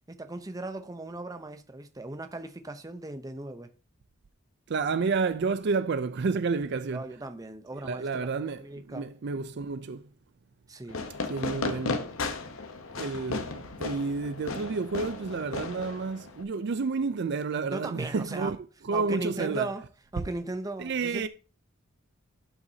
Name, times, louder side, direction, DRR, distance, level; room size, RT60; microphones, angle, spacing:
voice 1, 0.1-3.7 6.9-8.3 8.6-9.1 10.7-11.0 17.7-18.6 18.9-21.3, right 2 dB, 15° right, 0.7 m, -38 dB
voice 2, 4.7-7.1 7.8-10.1 11.3-12.1 13.0-18.6 18.9-19.7 20.8-21.3, right 4 dB, 55° right, 0.4 m, -30 dB
Fireworks, 10.9-16.4, left 3 dB, 75° left, 0.9 m, -35 dB
12.0 x 6.0 x 2.7 m
head